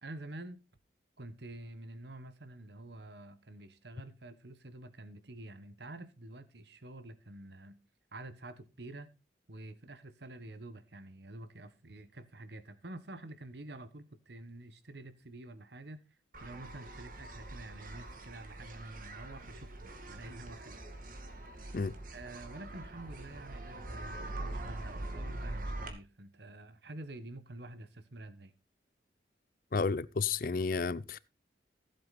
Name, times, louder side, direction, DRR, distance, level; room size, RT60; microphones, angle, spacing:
voice 1, 0.0-0.6 1.2-7.8 8.1-9.1 9.5-20.8 21.2-21.5 22.1-28.5, right 2 dB, 70° right, 1.3 m, -48 dB
sound 1, 16.3-25.9, right 1 dB, 50° right, 2.3 m, -43 dB
voice 2, 29.7-31.2, left 4 dB, 50° left, 0.5 m, -32 dB
15.5 x 7.9 x 4.1 m
head